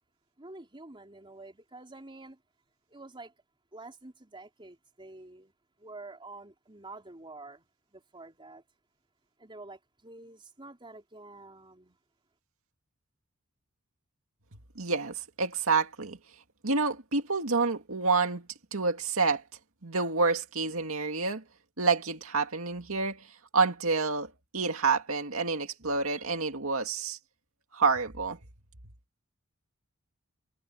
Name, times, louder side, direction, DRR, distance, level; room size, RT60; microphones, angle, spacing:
voice 1, 0.4-2.4 2.9-3.3 3.7-5.5 5.8-8.6 9.4-12.0, right 2 dB, 25° right, 4.1 m, -48 dB
voice 2, 14.8-16.2 16.6-18.5 18.7-19.4 19.8-21.4 21.8-23.3 23.5-27.2 27.7-28.4, right 4 dB, 75° right, 2.2 m, -28 dB
head